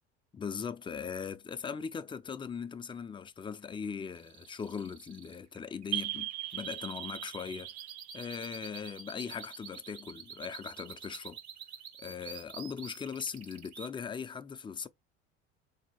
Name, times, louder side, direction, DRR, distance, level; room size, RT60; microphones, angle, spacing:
voice 1, 0.3-7.7 8.1-11.4 12.0-14.9, left 6 dB, 15° left, 0.4 m, -39 dB
sound 1, 4.1-13.9, right 6 dB, 85° right, 1.4 m, -47 dB
sound 2, 5.9-10.4, right 17 dB, 50° right, 0.5 m, -40 dB
4.0 x 2.7 x 2.9 m
hypercardioid pair, 75°, 32 cm